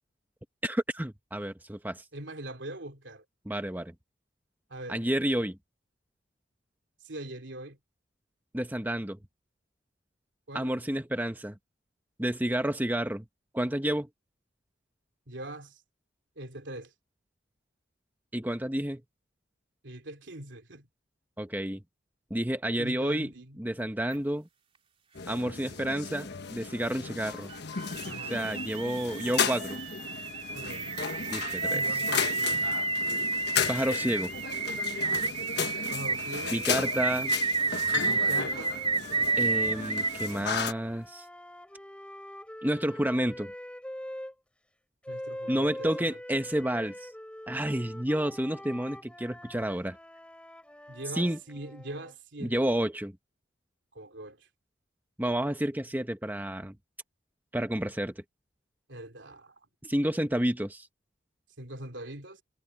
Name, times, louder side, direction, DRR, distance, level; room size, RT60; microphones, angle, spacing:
voice 1, 0.6-2.0 3.5-3.9 4.9-5.6 8.5-9.2 10.5-11.6 12.2-13.3 13.5-14.1 18.3-19.0 21.4-21.8 22.3-23.3 23.6-24.5 25.3-27.5 28.3-29.8 31.3-31.8 33.7-34.3 36.5-37.3 39.4-41.2 42.6-43.5 45.5-47.1 47.5-50.0 51.1-51.4 52.4-53.2 55.2-56.8 57.5-58.1 59.8-60.9, right 1 dB, 10° right, 1.2 m, -30 dB
voice 2, 2.1-3.2 4.7-5.0 7.0-7.8 10.5-10.7 15.3-15.8 16.4-16.9 19.8-20.9 22.8-23.6 28.0-28.4 30.5-31.0 31.6-32.5 35.9-37.0 38.1-38.8 45.1-46.2 50.9-52.7 53.9-54.5 58.9-59.5 61.6-62.4, right 1 dB, 75° right, 3.1 m, -42 dB
sound 1, 24.1-24.2 27.5-40.4, right 3 dB, 30° right, 2.8 m, -31 dB
sound 2, 25.1-40.7, left 6 dB, 65° left, 1.3 m, -35 dB
sound 3, 38.1-44.3 45.0-52.1, left 1 dB, 5° left, 4.8 m, -44 dB
head